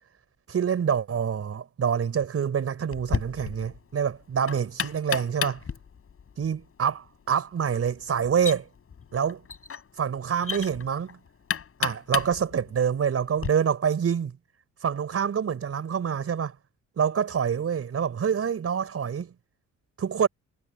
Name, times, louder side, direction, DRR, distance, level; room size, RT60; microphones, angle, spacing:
voice 1, 0.5-5.6 6.4-8.6 9.1-9.4 10.0-11.2 11.8-14.3 14.8-16.5 17.0-19.3 20.0-20.3, right 7 dB, 50° right, 5.5 m, -26 dB
Knock, 2.9-13.5, left 7 dB, 45° left, 7.4 m, -35 dB
cardioid pair, 90°, 30 cm